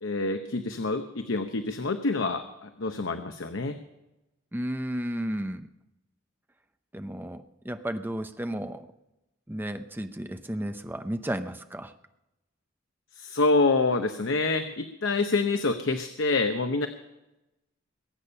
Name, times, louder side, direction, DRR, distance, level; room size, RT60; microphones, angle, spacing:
voice 1, 0.0-3.8 13.2-16.9, left 3 dB, 70° left, 7 dB, 0.9 m, -27 dB
voice 2, 4.5-5.7 6.9-8.9 9.5-11.9, right 1 dB, 10° right, 8 dB, 0.8 m, -33 dB
21.5 x 8.6 x 5.6 m, 0.96 s
head